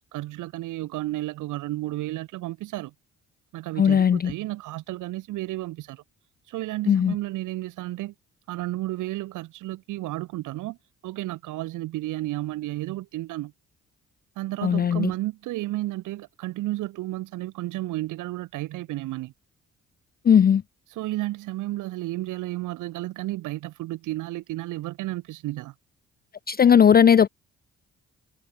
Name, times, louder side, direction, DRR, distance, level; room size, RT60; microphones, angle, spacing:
voice 1, 0.1-2.9 3.5-6.0 6.5-8.1 8.5-10.8 11.0-13.5 14.4-19.3 20.9-25.7, right 17 dB, 85° right, 1.8 m, -32 dB
voice 2, 3.8-4.3 6.9-7.1 14.6-15.1 20.2-20.6 26.5-27.3, left 8 dB, 30° left, 0.5 m, -17 dB
supercardioid pair, 70°, 30 cm